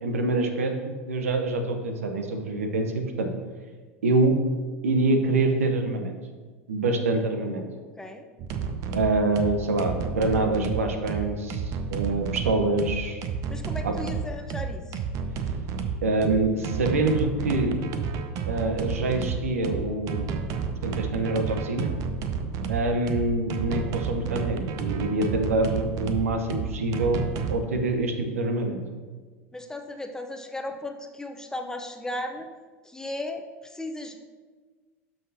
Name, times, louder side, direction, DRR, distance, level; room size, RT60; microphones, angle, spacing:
voice 1, 0.0-3.3 4.0-4.4 4.8-6.1 6.7-7.6 8.9-11.6 11.9-13.2 13.8-13.9 16.0-17.8 18.5-20.3 20.8-21.9 22.7-28.8, right 2 dB, 80° right, 5 dB, 0.9 m, -25 dB
voice 2, 8.0-8.3 13.5-15.0 29.5-32.5 32.8-34.2, left 1 dB, 10° left, 4 dB, 0.8 m, -36 dB
sound 1, 8.4-27.6, right 6 dB, 50° right, 0.7 m, -31 dB
12.0 x 5.8 x 2.8 m, 1.4 s
hypercardioid pair, 80°, 8 cm